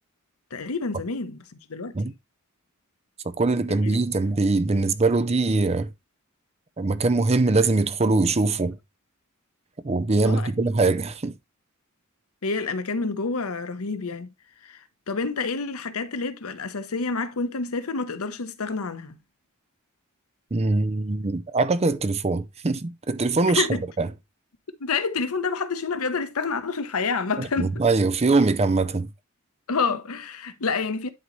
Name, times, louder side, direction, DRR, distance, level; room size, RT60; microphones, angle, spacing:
voice 1, 0.5-1.4 1.7-2.1 3.7-4.0 10.2-10.7 12.4-14.3 14.6-14.8 15.1-19.2 23.5-23.8 24.8-27.8 29.7-31.1, left 4 dB, 85° left, 0.9 m, -28 dB
voice 2, 3.4-5.9 6.8-8.8 9.8-11.3 20.5-23.7 24.0-24.1 27.4-29.1, right 3 dB, 30° right, 0.6 m, -22 dB
11.0 x 3.9 x 3.1 m
head